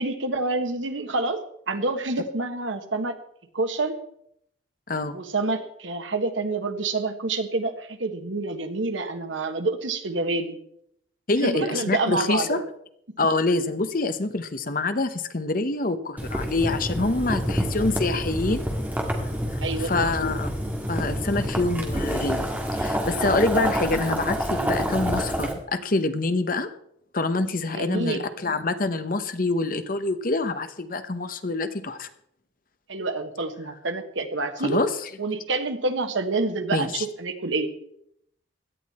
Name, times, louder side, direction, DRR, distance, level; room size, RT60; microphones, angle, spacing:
voice 1, 0.0-3.2 3.5-3.9 5.1-10.6 11.4-12.6 19.6-20.1 23.2-23.7 27.7-28.2 32.9-34.8 35.2-37.7, right 3 dB, 90° right, 7 dB, 1.5 m, -28 dB
voice 2, 11.3-12.6 13.2-18.7 19.8-20.5 20.9-26.7 27.1-32.1 34.6-34.9 36.7-37.0, left 2 dB, 45° left, 10 dB, 0.9 m, -26 dB
Boiling, 16.2-25.5, equal, 10° right, 2.0 m, -28 dB
17.0 x 11.5 x 4.3 m, 0.74 s
head